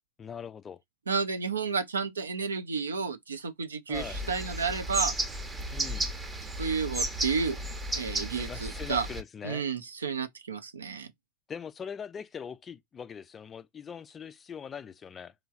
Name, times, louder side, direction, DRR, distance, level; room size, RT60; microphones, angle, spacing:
voice 1, 0.2-0.8 3.9-4.2 5.7-6.1 8.3-9.6 11.5-15.3, left 7 dB, 20° left, 0.3 m, -41 dB
voice 2, 1.1-5.1 6.6-7.6 7.9-9.1 9.4-11.1, right 5 dB, 70° right, 0.5 m, -31 dB
sound 1, 3.9-9.2, right 1 dB, 10° right, 0.7 m, -33 dB
3.0 x 2.3 x 2.4 m
figure-of-eight pair, 90°, 0 cm